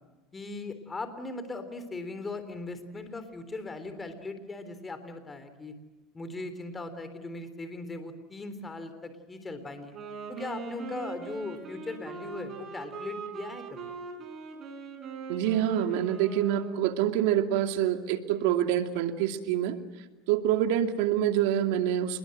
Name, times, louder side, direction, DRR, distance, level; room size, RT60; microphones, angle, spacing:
voice 1, 0.3-5.8 6.1-9.9 10.3-13.9, left 2 dB, 20° left, 10 dB, 3.5 m, -39 dB
Wind instrument woodwind instrument, 9.8-17.0, right 4 dB, 40° right, 7.1 m, -41 dB
voice 2, 15.3-19.8 20.3-22.2, right 11 dB, 80° right, 7 dB, 2.5 m, -26 dB
28.5 x 21.5 x 7.8 m, 1.1 s
supercardioid pair, 125°, 0 cm